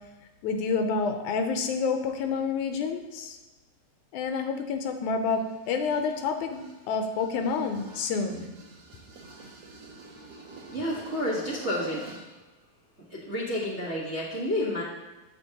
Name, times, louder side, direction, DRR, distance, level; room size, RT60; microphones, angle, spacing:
voice 1, 0.4-3.4 4.1-8.5, left 5 dB, 90° left, 6 dB, 2.2 m, -28 dB
sound 1, 5.4-12.4, right 3 dB, 65° right, 2.2 m, -47 dB
voice 2, 10.7-12.2 13.1-14.8, left 1 dB, 30° right, -9 dB, 1.3 m, -30 dB
8.3 x 8.0 x 3.0 m, 1.1 s
omnidirectional pair, 3.4 m